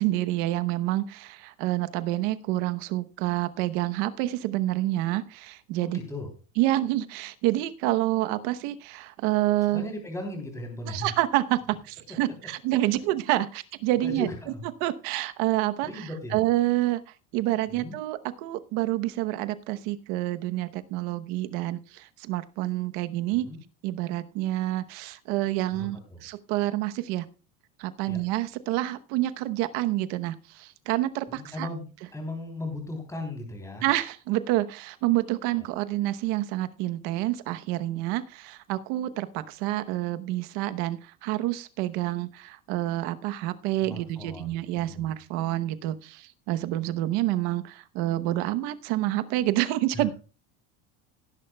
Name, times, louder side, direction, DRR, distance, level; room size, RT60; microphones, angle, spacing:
voice 1, 0.0-6.0 6.6-9.8 10.9-14.3 14.8-17.0 17.3-23.5 23.8-27.2 27.8-31.7 33.8-50.1, right 15 dB, 75° right, 11 dB, 1.0 m, -28 dB
voice 2, 5.8-6.3 9.7-11.1 14.0-14.6 15.8-16.4 17.7-17.9 23.3-23.6 25.7-26.2 28.1-28.2 31.3-31.8 32.1-33.8 35.5-35.7 43.8-45.1 49.9-50.1, left 1 dB, 10° left, 2 dB, 3.4 m, -37 dB
17.0 x 11.0 x 2.3 m, 0.33 s
cardioid pair, 140°, 38 cm